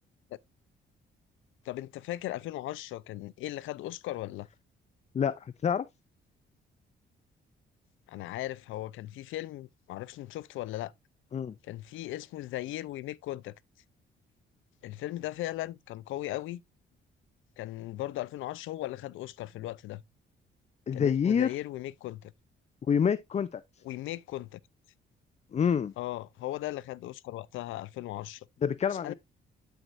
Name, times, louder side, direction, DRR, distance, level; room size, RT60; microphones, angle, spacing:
voice 1, 1.6-4.5 8.1-10.9 11.6-13.5 14.8-16.6 17.6-20.0 20.9-22.3 23.8-24.6 26.0-28.5 28.9-29.1, left 15 dB, 85° left, 0.5 m, -37 dB
voice 2, 5.1-5.9 11.3-11.5 20.9-21.6 22.9-23.6 25.5-25.9 28.6-29.1, left 7 dB, 35° left, 0.5 m, -27 dB
12.5 x 4.5 x 2.5 m
cardioid pair, 90°, 20 cm